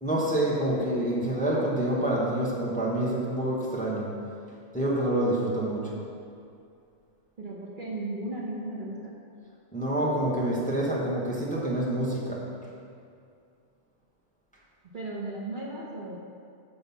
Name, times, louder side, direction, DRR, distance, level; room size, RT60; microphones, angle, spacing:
voice 1, 0.0-4.2 4.7-6.0 9.7-12.5, right 1 dB, 5° left, -4 dB, 0.9 m, -27 dB
voice 2, 7.4-9.1 14.9-16.2, right 2 dB, 45° right, -4 dB, 1.0 m, -35 dB
6.0 x 5.4 x 6.9 m, 2.4 s
omnidirectional pair, 1.4 m